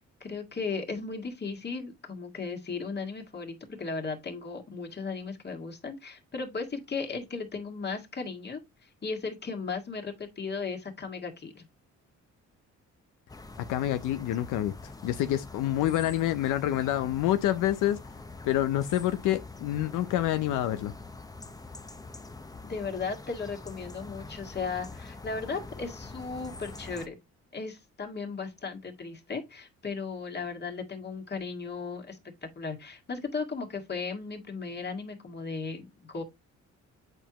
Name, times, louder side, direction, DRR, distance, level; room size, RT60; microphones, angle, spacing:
voice 1, 0.0-11.7 22.6-27.1 27.5-36.2, left 4 dB, 35° left, 1.9 m, -36 dB
sound 1, 13.3-27.1, left 3 dB, 10° left, 0.7 m, -45 dB
voice 2, 13.7-14.7 15.0-18.0 18.4-20.9, left 13 dB, 90° left, 0.6 m, -27 dB
7.9 x 4.5 x 2.9 m
cardioid pair, 90°, 30 cm